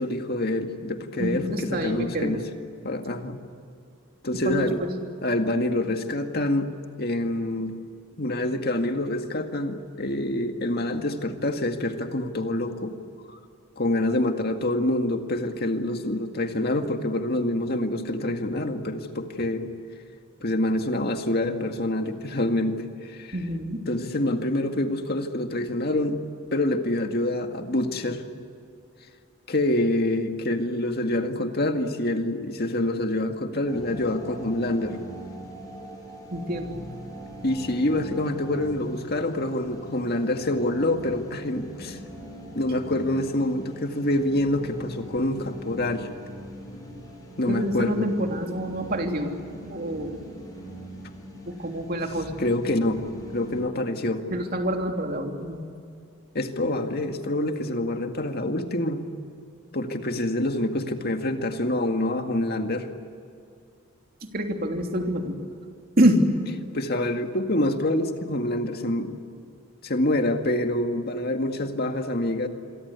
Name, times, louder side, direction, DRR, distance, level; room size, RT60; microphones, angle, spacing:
voice 1, 0.0-2.4 2.8-3.4 4.2-4.8 5.2-6.7 7.0-7.7 8.2-12.9 13.3-13.4 13.8-19.7 20.4-23.4 23.9-26.2 26.5-28.2 29.5-35.0 37.4-42.0 42.6-46.1 47.4-48.1 52.4-53.0 53.3-54.2 56.3-59.0 59.7-62.9 66.7-69.2 69.8-72.5, left 1 dB, 50° left, 5 dB, 2.0 m, -26 dB
voice 2, 1.2-2.4 4.4-4.9 23.3-23.8 36.3-36.8 47.5-49.3 49.6-50.2 51.4-52.3 54.3-55.6 64.2-65.4 66.0-66.2, right 1 dB, 45° right, 3 dB, 3.1 m, -26 dB
sound 1, 33.7-53.6, right 1 dB, 20° left, 7.8 m, -41 dB
27.5 x 23.5 x 8.3 m, 2.5 s
head